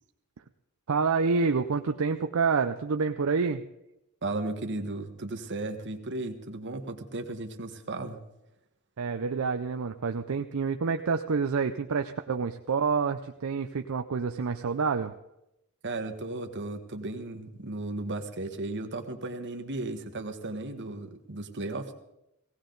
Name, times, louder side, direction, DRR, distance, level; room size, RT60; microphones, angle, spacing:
voice 1, 0.9-3.6 9.0-15.2, right 5 dB, 75° right, 6 dB, 0.5 m, -28 dB
voice 2, 4.2-8.2 15.8-21.9, right 2 dB, 55° right, 6 dB, 1.4 m, -35 dB
17.5 x 17.0 x 3.9 m, 0.86 s
head